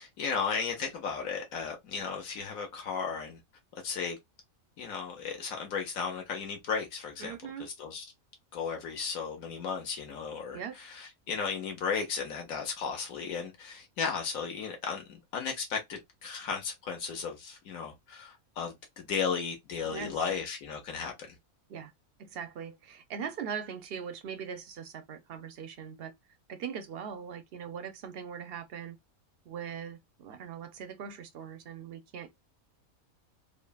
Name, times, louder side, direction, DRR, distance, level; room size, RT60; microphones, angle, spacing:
voice 1, 0.0-3.4 3.8-4.2 4.8-8.0 8.5-15.0 15.3-21.3, left 6 dB, 80° left, 1.3 m, -35 dB
voice 2, 7.2-7.7 10.5-10.7 19.9-20.2 21.7-21.9 22.2-26.1 26.5-29.0 29.5-32.3, right 7 dB, 60° right, 0.6 m, -40 dB
3.7 x 2.1 x 2.3 m
omnidirectional pair, 1.5 m